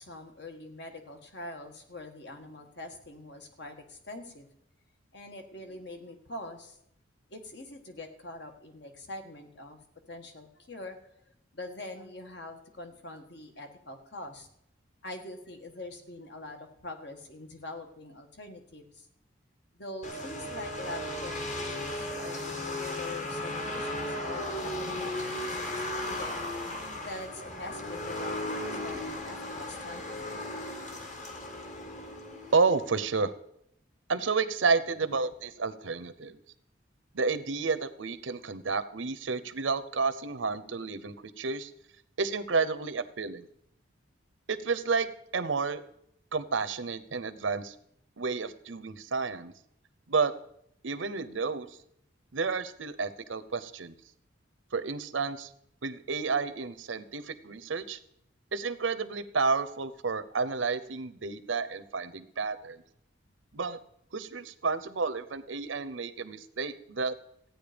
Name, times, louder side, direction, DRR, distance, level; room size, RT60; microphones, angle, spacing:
voice 1, 0.0-4.5 5.1-6.8 7.3-9.8 10.1-11.0 11.5-14.5 15.0-19.1 19.7-26.4 26.9-30.4, left 2 dB, 60° left, 5 dB, 1.6 m, -44 dB
sound 1, 20.0-33.1, left 1 dB, 40° left, 1.6 m, -36 dB
voice 2, 32.5-33.3 34.1-36.4 37.1-41.7 42.2-43.5 44.5-45.1 45.3-45.8 46.3-47.7 48.2-49.5 50.1-50.3 50.8-51.7 52.3-53.9 54.7-55.5 55.8-58.0 58.5-62.8 63.5-63.8 64.1-67.2, right 4 dB, 80° right, 14 dB, 0.8 m, -30 dB
14.5 x 9.2 x 5.2 m, 0.74 s
head